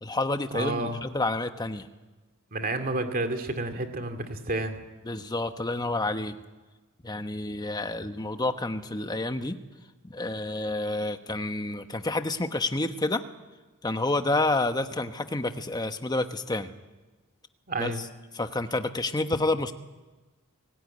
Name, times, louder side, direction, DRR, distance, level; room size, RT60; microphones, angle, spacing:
voice 1, 0.0-1.9 5.0-6.4 7.0-9.6 10.0-13.2 13.8-16.7 17.8-18.0 18.3-19.7, left 2 dB, 20° left, 8 dB, 1.1 m, -29 dB
voice 2, 0.5-1.0 2.5-4.8 17.7-18.0, right 2 dB, 40° right, 7 dB, 2.4 m, -30 dB
27.5 x 18.0 x 9.7 m, 1.2 s
head